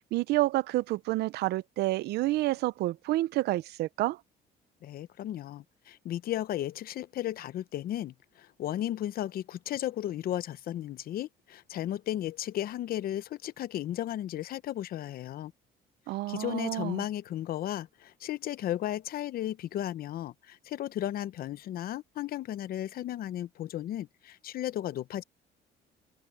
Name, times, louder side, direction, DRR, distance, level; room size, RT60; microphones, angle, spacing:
voice 1, 0.0-4.2 16.1-17.0, right 17 dB, 80° right, 0.6 m, -29 dB
voice 2, 4.8-15.5 16.3-25.2, left 12 dB, 60° left, 0.8 m, -35 dB
cardioid pair, 110°, 17 cm